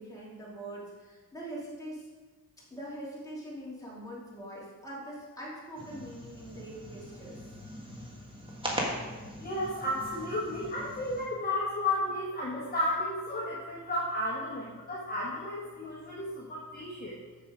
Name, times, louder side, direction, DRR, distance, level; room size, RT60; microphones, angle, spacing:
voice 1, 0.0-2.1 2.7-7.4, right 1 dB, 10° left, -7 dB, 2.8 m, -43 dB
sound 1, 5.8-11.3, equal, 15° right, 1.4 m, -40 dB
voice 2, 9.4-17.2, left 1 dB, 25° left, -6 dB, 1.5 m, -33 dB
6.8 x 6.7 x 5.0 m, 1.3 s
wide cardioid pair, 140°, 34 cm